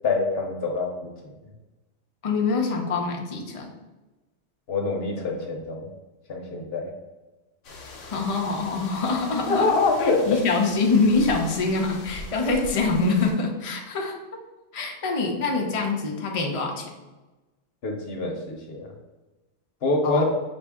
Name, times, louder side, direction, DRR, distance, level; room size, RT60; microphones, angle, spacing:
voice 1, 0.0-1.1 4.7-5.9 6.3-6.9 9.5-10.4 17.8-18.9 19.8-20.2, left 3 dB, 60° left, 1 dB, 0.9 m, -25 dB
voice 2, 2.2-3.7 8.0-9.7 10.3-14.2 14.7-16.9 20.0-20.2, left 3 dB, 45° left, 1 dB, 0.5 m, -24 dB
sound 1, 7.6-13.3, left 2 dB, 90° left, 1.1 m, -41 dB
5.2 x 2.6 x 3.5 m, 1.1 s
omnidirectional pair, 1.3 m